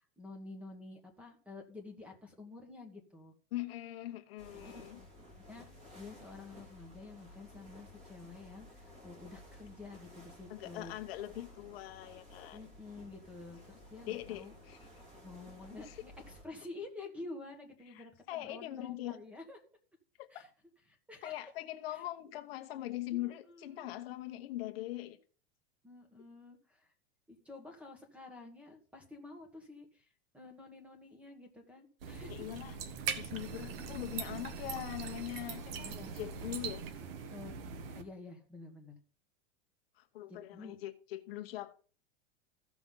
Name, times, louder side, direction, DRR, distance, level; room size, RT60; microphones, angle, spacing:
voice 1, 0.2-3.3 4.6-5.1 5.4-5.7 5.9-10.9 12.5-14.5 15.2-19.6 20.3-20.5 20.9-21.3 21.9-22.0 23.1-23.9 25.8-26.9 27.3-30.1 30.3-32.5 33.6-34.0 34.6-34.8 35.6-36.1 37.3-37.5 37.9-38.9 40.3-40.8, left 3 dB, 5° right, 1.5 m, -50 dB
voice 2, 3.5-5.0 10.5-12.6 14.0-14.9 15.8-16.0 17.9-19.2 20.2-20.4 21.2-25.2 32.3-32.8 33.2-36.8 40.0-41.7, left 15 dB, 60° left, 1.1 m, -42 dB
sound 1, 4.4-16.4, left 1 dB, 20° right, 2.9 m, -55 dB
sound 2, 32.0-38.0, right 6 dB, 60° right, 1.3 m, -41 dB
15.5 x 6.0 x 3.8 m
supercardioid pair, 160°, 33 cm